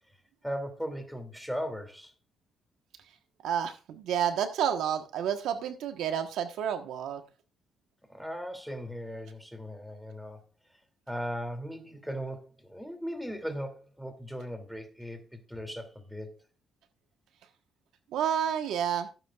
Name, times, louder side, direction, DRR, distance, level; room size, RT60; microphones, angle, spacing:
voice 1, 0.4-2.1 8.1-10.4 11.1-16.4, equal, ahead, 2.8 m, -38 dB
voice 2, 3.4-7.2 18.1-19.1, right 9 dB, 85° right, 1.3 m, -30 dB
16.0 x 9.2 x 2.4 m
cardioid pair, 90°, 0 cm